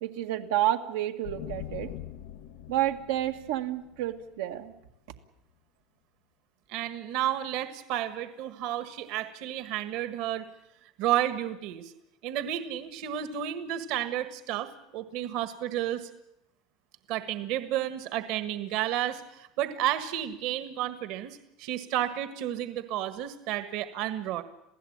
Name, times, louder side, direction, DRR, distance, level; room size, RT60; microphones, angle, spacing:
voice 1, 0.0-1.9 2.7-4.7, right 13 dB, 90° right, 5 dB, 1.9 m, -30 dB
sound 1, 1.2-4.9, left 13 dB, 80° left, 1.4 m, -43 dB
voice 2, 6.7-10.4 11.0-11.9 12.2-16.1 17.1-24.4, right 12 dB, 55° right, 10 dB, 1.6 m, -31 dB
27.5 x 16.5 x 8.8 m, 0.83 s
cardioid pair, 165°, 0 cm